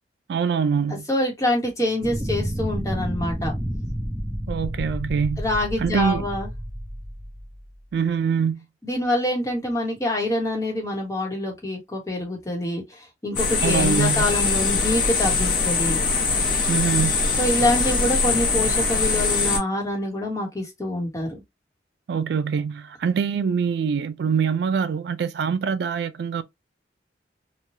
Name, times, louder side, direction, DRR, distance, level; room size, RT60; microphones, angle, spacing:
voice 1, 0.3-1.1 4.5-5.4 5.8-6.3 7.9-8.6 13.6-14.3 16.7-17.1 22.1-26.4, right 6 dB, 65° right, 0.3 m, -24 dB
voice 2, 1.1-3.5 5.4-6.5 8.8-16.0 17.4-21.4, left 1 dB, 15° left, 1.0 m, -26 dB
sound 1, 2.0-7.8, equal, 15° right, 0.6 m, -30 dB
sound 2, 13.4-19.6, left 4 dB, 50° left, 0.9 m, -22 dB
3.1 x 2.2 x 2.7 m
head